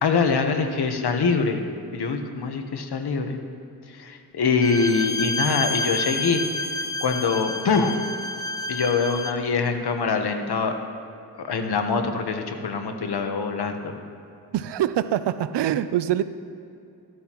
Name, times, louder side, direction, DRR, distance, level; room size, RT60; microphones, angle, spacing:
voice 1, 0.0-1.6 1.9-3.4 3.9-6.4 7.0-8.0 8.7-10.7 11.3-13.9, left 5 dB, 70° left, 6 dB, 1.1 m, -24 dB
Bowed string instrument, 4.6-9.5, left 2 dB, 10° left, 0.5 m, -29 dB
voice 2, 14.5-16.2, right 11 dB, 85° right, 13 dB, 0.5 m, -24 dB
13.5 x 12.5 x 3.0 m, 2.6 s
wide cardioid pair, 85°, 41 cm